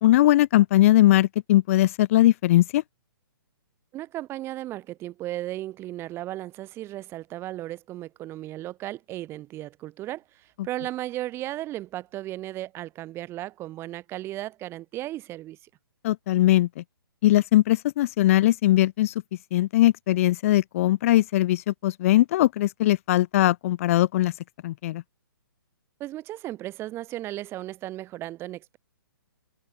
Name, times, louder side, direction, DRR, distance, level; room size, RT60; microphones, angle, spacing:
voice 1, 0.0-2.8 16.0-16.8 17.2-19.1 19.5-24.3 24.6-25.0, left 15 dB, 35° left, 2.5 m, -20 dB
voice 2, 3.9-15.6 26.0-28.8, right 15 dB, 20° right, 6.9 m, -35 dB
figure-of-eight pair, 125°, 12 cm